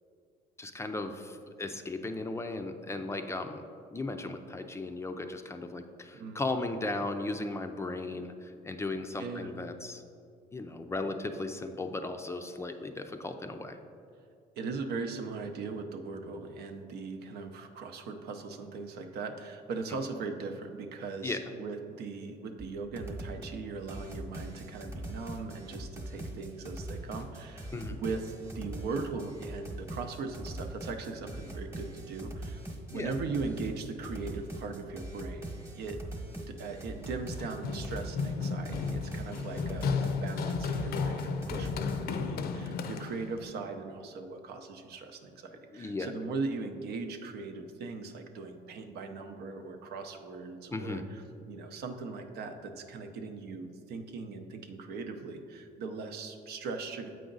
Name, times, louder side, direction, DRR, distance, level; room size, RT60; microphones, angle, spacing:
voice 1, 0.6-3.6 3.9-10.0 10.5-13.8 21.2-21.4 27.7-28.0 32.9-33.1 45.7-46.1 50.7-51.0, left 2 dB, 15° left, 6 dB, 0.4 m, -36 dB
voice 2, 9.2-9.5 14.6-32.6 32.9-36.0 36.5-57.1, right 4 dB, 75° right, 6 dB, 0.7 m, -39 dB
sound 1, 22.6-22.7 23.0-23.6 23.9-42.1, right 1 dB, 15° right, 1.1 m, -42 dB
Run, 37.1-43.4, left 5 dB, 65° left, 0.5 m, -34 dB
7.7 x 5.0 x 3.9 m, 2.4 s
cardioid pair, 110°, 17 cm